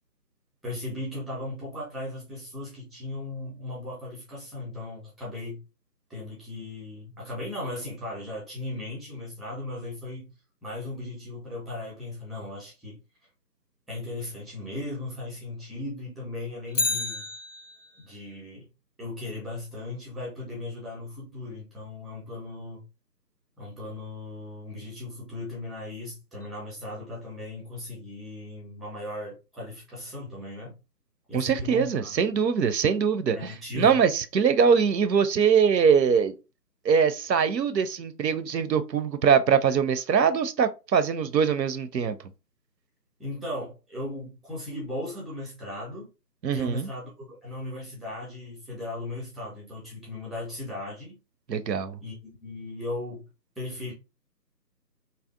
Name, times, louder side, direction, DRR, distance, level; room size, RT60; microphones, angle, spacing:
voice 1, 0.6-5.6 6.1-10.3 10.6-13.0 13.9-17.3 18.0-18.7 19.0-22.8 23.6-30.8 31.3-32.2 33.3-34.0 43.2-46.1 46.5-51.2 52.0-53.2 53.6-53.9, left 2 dB, ahead, 0.5 m, -37 dB
Bicycle, 16.7-18.1 26.4-26.5, left 3 dB, 50° left, 0.5 m, -30 dB
voice 2, 31.3-36.3 36.8-42.2 46.4-46.9 51.5-52.0, right 6 dB, 80° right, 0.5 m, -23 dB
2.6 x 2.0 x 2.4 m
figure-of-eight pair, 160°, 50 cm